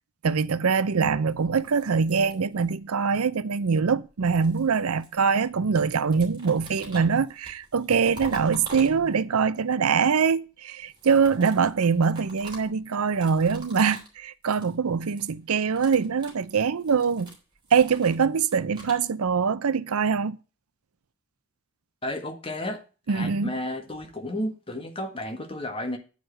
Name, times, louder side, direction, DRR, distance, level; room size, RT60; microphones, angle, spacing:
voice 1, 0.2-17.3 17.7-20.4 23.1-23.5, right 5 dB, 85° right, 0.6 m, -23 dB
sound 1, 1.4-3.0 3.9-5.5 5.8-9.4 10.8-14.2 14.4-14.8 15.0-15.3 15.6-19.0, right 1 dB, 20° right, 3.2 m, -46 dB
voice 2, 22.0-22.8 23.1-26.0, left 1 dB, 25° left, 1.5 m, -32 dB
9.2 x 5.1 x 7.5 m
head